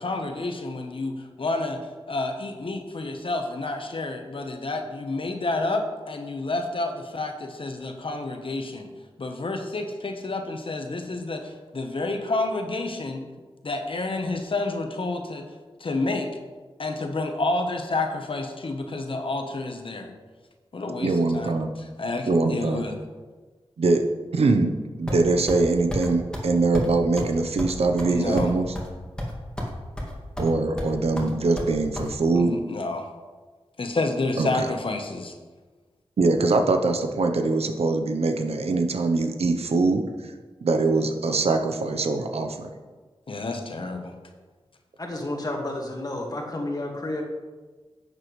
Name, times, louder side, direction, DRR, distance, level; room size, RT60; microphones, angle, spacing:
voice 1, 0.0-1.8 2.1-8.9 9.2-13.2 13.6-15.4 15.8-16.3 16.8-20.1 20.7-23.0 28.1-28.5 32.3-33.1 33.8-35.3 43.3-44.2, left 2 dB, 60° left, 5 dB, 1.1 m, -29 dB
voice 2, 21.0-21.7 22.3-22.8 23.8-24.0 24.3-24.7 25.0-28.7 30.4-32.5 34.4-34.7 36.2-40.3 40.6-42.7, right 3 dB, 85° right, 5 dB, 0.8 m, -23 dB
sound 1, 25.1-25.6 25.9-26.1 26.3-26.5 26.7-26.9 27.2-27.3 27.6-28.9 29.2-29.7 30.0-30.5 30.8-32.1, left 1 dB, 10° left, 2.1 m, -31 dB
voice 3, 45.0-47.2, left 1 dB, 40° left, 1 dB, 1.9 m, -31 dB
11.0 x 7.6 x 3.2 m, 1.3 s
cardioid pair, 55°, 10 cm